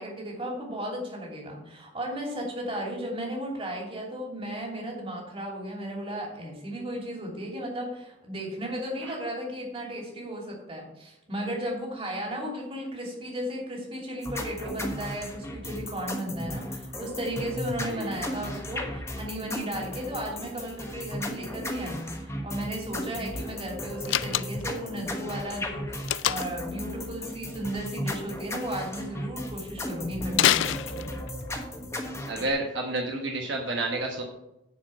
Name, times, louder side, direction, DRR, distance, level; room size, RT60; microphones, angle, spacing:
voice 1, 0.0-31.1, equal, 30° right, -2 dB, 2.9 m, -35 dB
sound 1, 14.2-32.5, left 1 dB, 15° left, 1.2 m, -36 dB
voice 2, 17.9-18.2 32.3-34.2, right 2 dB, 65° right, 1 dB, 1.2 m, -30 dB
Slam, 24.0-24.8 26.1-26.7 30.3-31.4, left 12 dB, 70° left, 0.3 m, -25 dB
10.0 x 4.8 x 7.6 m, 0.90 s
head